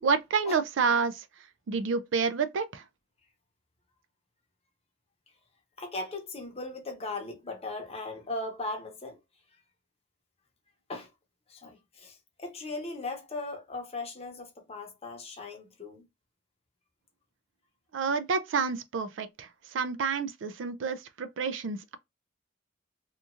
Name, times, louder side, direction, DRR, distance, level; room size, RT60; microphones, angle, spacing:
voice 1, 0.0-1.2 1.7-2.8 17.9-22.0, right 5 dB, 70° right, 0.4 m, -29 dB
voice 2, 5.8-9.2 10.9-11.1 11.5-16.1, left 2 dB, 30° left, 0.8 m, -38 dB
2.9 x 2.4 x 2.5 m
head